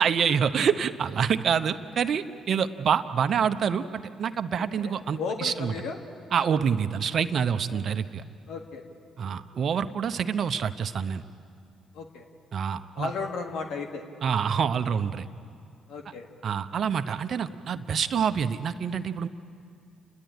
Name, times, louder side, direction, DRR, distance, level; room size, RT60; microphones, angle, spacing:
voice 1, 0.0-5.7 6.3-8.2 9.2-11.2 12.5-13.1 14.2-15.3 16.4-19.3, right 7 dB, 55° right, 10 dB, 0.9 m, -26 dB
voice 2, 4.5-6.0 7.7-7.8 8.5-8.8 11.9-12.3 13.0-14.0 15.9-16.3, left 4 dB, 75° left, 3 dB, 1.8 m, -35 dB
30.0 x 10.5 x 9.1 m, 2.3 s
hypercardioid pair, 55°, 0 cm